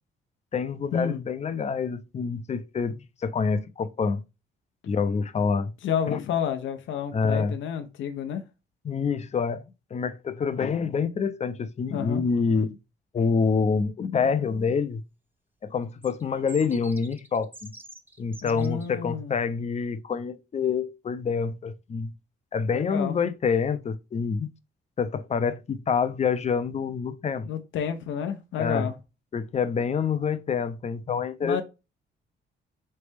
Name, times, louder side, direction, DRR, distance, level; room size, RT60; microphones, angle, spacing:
voice 1, 0.5-4.2 4.9-5.7 6.1-6.2 7.1-7.6 8.8-9.6 9.9-12.8 13.1-15.0 15.6-17.7 18.2-22.1 22.5-24.5 25.0-27.5 28.6-28.9 29.3-31.6, left 5 dB, 35° left, 0.5 m, -27 dB
voice 2, 5.8-8.4 11.9-12.2 18.4-19.3 22.7-23.2 27.5-28.9 31.4-31.6, left 8 dB, 75° left, 0.7 m, -30 dB
sound 1, 16.0-18.9, right 2 dB, 10° right, 0.7 m, -46 dB
4.1 x 3.3 x 3.3 m
cardioid pair, 90°, 20 cm